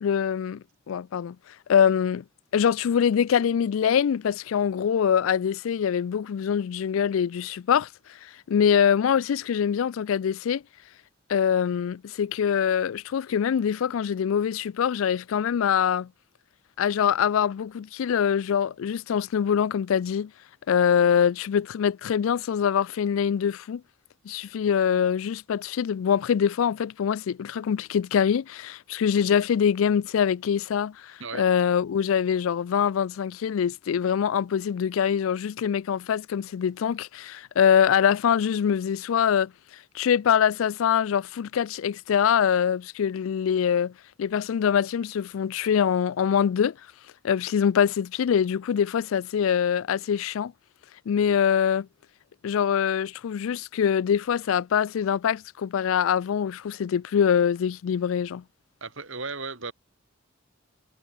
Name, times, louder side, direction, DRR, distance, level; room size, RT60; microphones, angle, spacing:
voice 1, 0.0-1.4 1.7-2.2 2.5-7.9 8.2-10.6 11.3-16.1 16.8-20.3 20.7-23.8 24.3-39.5 39.9-43.9 44.2-46.7 47.2-50.5 51.1-51.9 52.4-58.4, left 8 dB, 75° left, 0.3 m, -24 dB
voice 2, 58.8-59.7, right 4 dB, 65° right, 4.4 m, -35 dB
head